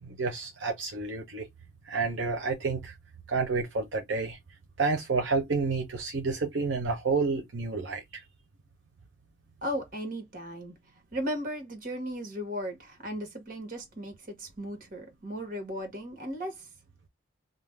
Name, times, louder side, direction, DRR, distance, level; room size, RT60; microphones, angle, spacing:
voice 1, 0.0-1.5 1.9-2.9 3.3-4.4 4.8-8.0, right 4 dB, 80° right, 0.7 m, -29 dB
voice 2, 9.6-10.7 11.1-16.7, equal, 45° right, 1.1 m, -36 dB
2.5 x 2.1 x 3.2 m
head